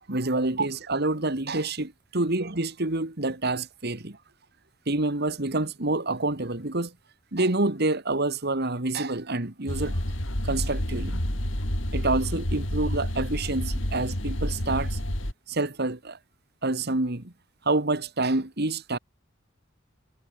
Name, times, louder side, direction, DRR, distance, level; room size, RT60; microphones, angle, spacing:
voice 1, 0.1-4.2 4.9-6.9 7.3-10.0 10.4-11.2 11.9-15.0 15.5-16.2 16.6-17.3 17.7-19.0, right 2 dB, 55° right, 2.2 m, -27 dB
sound 1, 9.7-15.3, equal, 70° left, 6.4 m, -29 dB
head